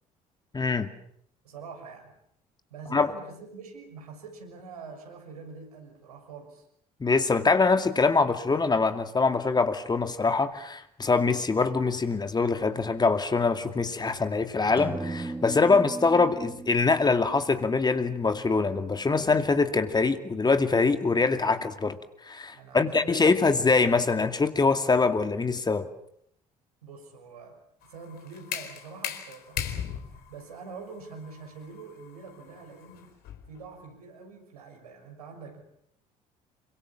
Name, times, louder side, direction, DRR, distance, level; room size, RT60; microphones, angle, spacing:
voice 1, 0.5-0.9 2.9-3.1 7.0-22.0 22.2-25.8, left 4 dB, 20° left, 8 dB, 2.4 m, -24 dB
voice 2, 1.4-2.1 2.7-6.7 15.6-15.8 22.5-23.3 26.8-33.1 33.5-35.6, right 4 dB, 75° right, 2 dB, 6.6 m, -45 dB
sound 1, 14.8-18.6, right 2 dB, 10° right, 2.2 m, -38 dB
sound 2, 27.8-33.6, left 9 dB, 55° left, 4.2 m, -38 dB
28.0 x 24.5 x 7.4 m, 0.71 s
figure-of-eight pair, 55°, 19 cm